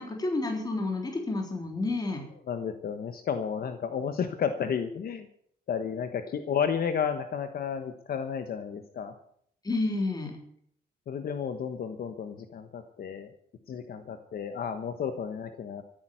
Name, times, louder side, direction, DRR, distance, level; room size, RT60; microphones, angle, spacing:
voice 1, 0.0-2.2 9.6-10.4, left 2 dB, 20° left, 2 dB, 3.6 m, -30 dB
voice 2, 2.5-5.3 5.7-9.1 11.1-13.3 13.7-15.8, left 7 dB, 60° left, 8 dB, 1.3 m, -32 dB
14.5 x 9.0 x 9.2 m, 0.66 s
cardioid pair, 120°, 18 cm